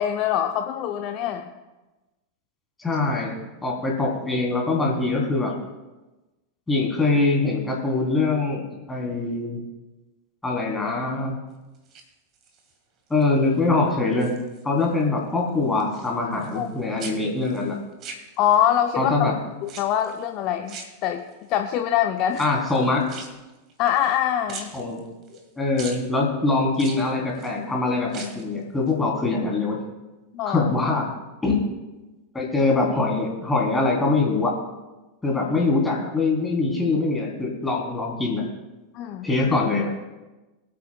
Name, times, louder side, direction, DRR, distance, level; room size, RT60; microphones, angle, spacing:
voice 1, 0.0-1.5 16.5-16.7 18.4-19.3 19.6-20.8 21.0-21.2 21.5-22.4 23.8-24.7 30.3-30.6 38.9-39.3, left 10 dB, 40° left, 6 dB, 0.7 m, -23 dB
voice 2, 2.8-3.3 3.6-5.5 6.7-9.6 10.4-11.4 13.1-14.3 14.6-17.8 19.0-19.3 22.4-23.1 24.7-25.0 25.3-29.8 30.4-31.1 31.4-31.6 32.3-34.6 35.2-38.5 39.2-39.9, left 3 dB, 10° left, -2 dB, 3.3 m, -23 dB
sound 1, 11.8-12.7 13.2-13.6 13.9-14.9 15.2-16.7 17.0-18.8 19.6-20.2 20.7-21.5 22.3-24.2 24.5-25.5 25.8-26.1 26.7-27.6 28.0-28.5 28.9-29.0, right 4 dB, 35° right, 1.8 m, -42 dB
22.0 x 8.7 x 2.3 m, 1.1 s
figure-of-eight pair, 90°, 0 cm